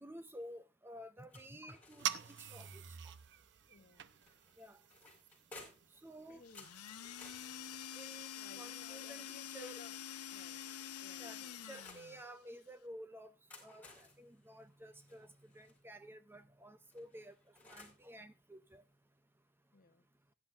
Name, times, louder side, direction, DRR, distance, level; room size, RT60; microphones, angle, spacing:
voice 1, 0.0-3.0 4.6-4.8 6.0-6.4 8.0-8.3 8.6-9.8 11.2-13.3 13.6-17.4 17.7-18.8, equal, 10° right, 0.5 m, -53 dB
sound 1, 1.3-2.9 4.2-6.0 6.5-9.5 10.3-12.1 13.2-15.8 16.9-18.1, left 2 dB, 5° left, 4.9 m, -59 dB
sound 2, 2.0-7.7, right 10 dB, 55° right, 0.7 m, -46 dB
voice 2, 3.7-4.1 6.3-6.7 8.4-9.9 10.3-10.6 11.0-11.5 19.7-20.0, left 4 dB, 40° left, 1.0 m, -58 dB
sound 3, 6.4-12.3, left 9 dB, 85° left, 1.0 m, -47 dB
16.5 x 10.5 x 2.5 m
head